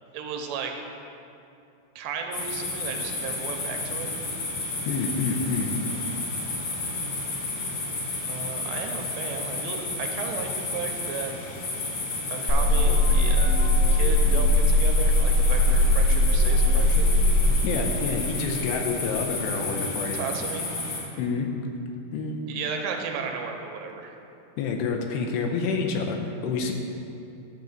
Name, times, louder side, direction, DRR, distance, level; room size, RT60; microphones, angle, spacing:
voice 1, 0.1-0.7 2.0-4.1 8.3-11.3 12.3-13.6 13.9-17.1 20.1-20.7 22.5-24.2, right 6 dB, 90° right, 3 dB, 2.9 m, -34 dB
sound 1, 2.3-21.0, left 2 dB, 55° left, 3.5 m, -32 dB
voice 2, 4.9-5.7 17.6-20.2 21.2-21.5 22.1-22.5 24.6-26.2 26.4-26.7, left 4 dB, 80° left, 2 dB, 2.8 m, -28 dB
sound 2, 12.5-17.5, left 1 dB, 25° left, 1.1 m, -20 dB
10.5 x 4.0 x 7.3 m, 2.7 s
omnidirectional pair, 5.0 m